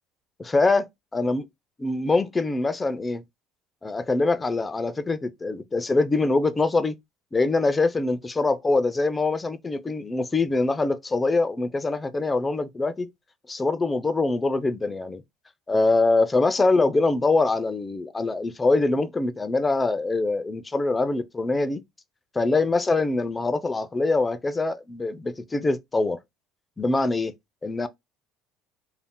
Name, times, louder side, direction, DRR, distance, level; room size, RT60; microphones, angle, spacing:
voice 1, 0.4-1.4 1.8-3.2 3.8-7.0 7.3-13.1 13.5-15.2 15.7-21.8 22.4-26.2 26.8-27.3 27.6-27.9, left 3 dB, 15° left, 0.3 m, -24 dB
2.5 x 2.0 x 3.6 m
supercardioid pair, 110°, 0 cm